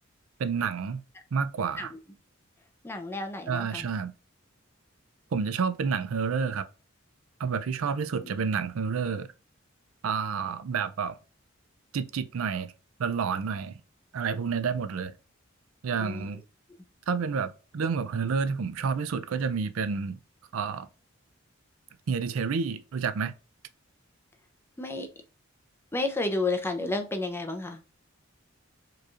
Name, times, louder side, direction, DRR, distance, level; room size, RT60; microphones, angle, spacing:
voice 1, 0.4-1.0 1.3-1.9 3.5-4.1 5.3-6.6 7.4-9.3 10.0-11.2 11.9-12.7 13.0-13.8 14.1-15.1 15.8-16.4 17.1-20.2 20.5-20.9 22.1-23.3, right 5 dB, 85° right, 0.4 m, -29 dB
voice 2, 2.8-3.9 8.2-8.5 16.0-16.3 16.7-16.9 24.8-25.1 25.9-27.8, left 2 dB, 10° left, 0.6 m, -32 dB
4.7 x 3.1 x 2.4 m
head